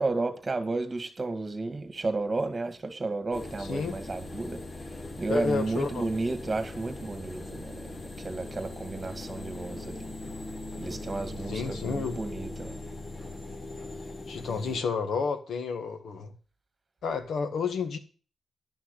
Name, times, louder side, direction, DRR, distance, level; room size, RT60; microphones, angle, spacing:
voice 1, 0.0-4.6 5.2-7.9 8.2-10.1 10.8-12.8, right 3 dB, 25° right, 1.9 m, -32 dB
sound 1, 3.3-14.8, left 2 dB, 35° left, 1.0 m, -40 dB
voice 2, 3.6-4.0 5.3-6.1 11.5-12.2 14.3-16.3 17.0-18.0, left 5 dB, 85° left, 1.7 m, -30 dB
11.0 x 6.1 x 8.3 m
wide cardioid pair, 120°, 0 cm